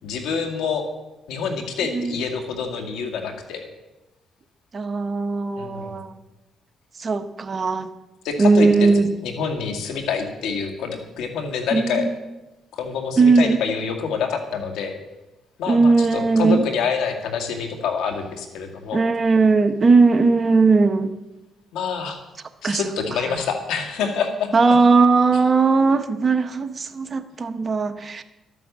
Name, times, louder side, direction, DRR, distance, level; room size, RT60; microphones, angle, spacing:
voice 1, 0.0-0.8 1.3-3.7 5.6-5.9 8.2-8.9 9.2-12.1 12.7-14.9 15.6-19.0 21.7-22.2 22.6-24.5, left 6 dB, 85° left, 4 dB, 2.1 m, -26 dB
voice 2, 1.9-2.2 4.7-6.1 7.0-7.9 8.4-9.1 11.7-12.1 13.2-13.6 15.7-16.6 18.9-21.2 22.6-22.8 23.3-23.4 24.5-28.2, right 4 dB, 35° right, 8 dB, 1.1 m, -18 dB
12.5 x 9.3 x 7.4 m, 1.0 s
cardioid pair, 90°, 0 cm